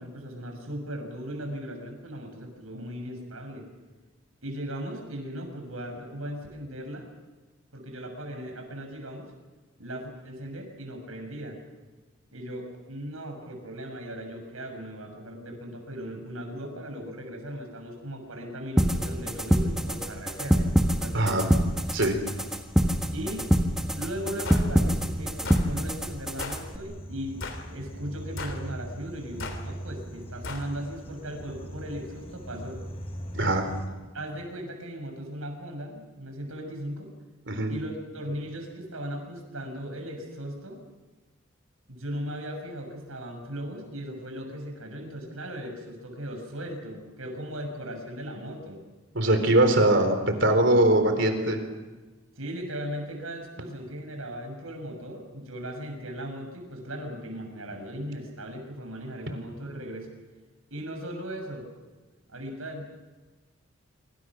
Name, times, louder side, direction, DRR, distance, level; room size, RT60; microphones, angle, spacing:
voice 1, 0.0-3.7 4.4-7.1 7.7-9.3 9.8-11.6 12.3-20.6 21.0-21.4 23.1-23.5 24.0-27.4 27.7-32.8 34.1-37.1 37.7-40.8 41.9-48.8 52.4-60.1 60.7-61.7 62.3-62.9, equal, 80° right, 4 dB, 6.6 m, -37 dB
sound 1, 18.8-26.8, equal, 5° right, 1.3 m, -25 dB
sound 2, 19.2-33.9, equal, 30° left, 4.6 m, -43 dB
voice 2, 21.1-21.5 21.9-22.2 33.4-33.7 37.5-37.7 49.1-50.2 50.4-51.6, right 1 dB, 55° right, 7 dB, 3.9 m, -21 dB
sound 3, 24.4-24.7 25.4-25.7 26.4-26.6 27.4-27.7 28.4-28.6 29.4-29.6 30.4-30.7, left 3 dB, 65° left, 3.2 m, -36 dB
26.0 x 25.5 x 6.1 m, 1.2 s
head